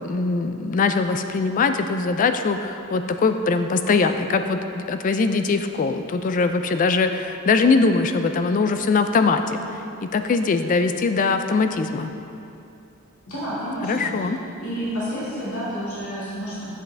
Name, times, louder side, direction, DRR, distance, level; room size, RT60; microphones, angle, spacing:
voice 1, 0.0-9.6 10.0-12.1 13.8-14.4, left 4 dB, 35° left, 8 dB, 0.3 m, -21 dB
voice 2, 13.3-14.3 14.6-16.7, equal, 80° left, -10 dB, 1.9 m, -30 dB
8.2 x 7.4 x 3.4 m, 2.7 s
head